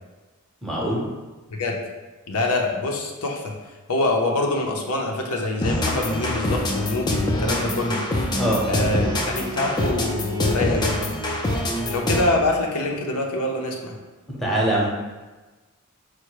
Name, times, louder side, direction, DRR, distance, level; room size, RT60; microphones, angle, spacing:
voice 1, 0.6-1.0 8.4-8.6 14.3-14.9, right 1 dB, ahead, -5 dB, 0.8 m, -23 dB
voice 2, 2.3-3.5 3.9-8.0 8.7-11.1 11.9-13.9, left 2 dB, 75° left, 1 dB, 0.6 m, -25 dB
sound 1, 5.6-12.5, left 1 dB, 20° left, 0.4 m, -25 dB
4.6 x 2.1 x 4.7 m, 1.2 s
head